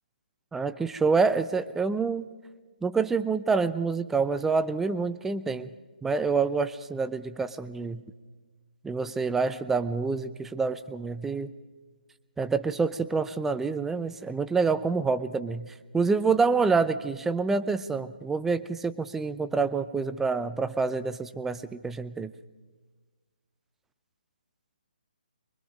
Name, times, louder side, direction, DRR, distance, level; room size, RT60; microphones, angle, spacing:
voice 1, 0.5-2.3 2.8-5.7 6.0-8.0 8.8-11.5 12.4-22.3, right 4 dB, 5° right, 11 dB, 0.6 m, -27 dB
24.0 x 21.5 x 5.1 m, 1.4 s
figure-of-eight pair, 145°, 5 cm